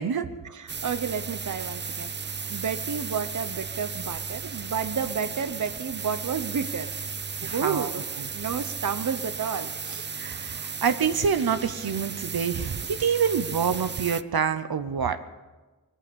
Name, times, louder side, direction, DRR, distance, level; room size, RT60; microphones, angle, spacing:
voice 1, 0.4-2.1 2.5-6.9 7.4-8.0 8.3-10.1, right 6 dB, 55° right, 11 dB, 0.8 m, -31 dB
sound 1, 0.7-14.2, right 5 dB, 30° right, 0.4 m, -35 dB
voice 2, 7.4-7.9 10.1-15.2, right 6 dB, 80° right, 10 dB, 0.8 m, -26 dB
21.5 x 8.8 x 6.9 m, 1.2 s
wide cardioid pair, 85°, 36 cm